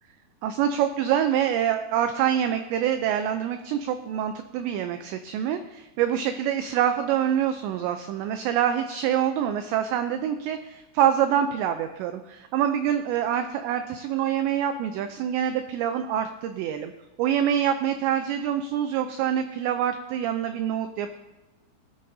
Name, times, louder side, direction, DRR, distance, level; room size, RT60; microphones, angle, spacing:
voice 1, 0.4-16.9 17.2-21.2, right 9 dB, 90° right, 8 dB, 2.5 m, -26 dB
18.5 x 11.5 x 2.7 m, 1.1 s
omnidirectional pair, 5.8 m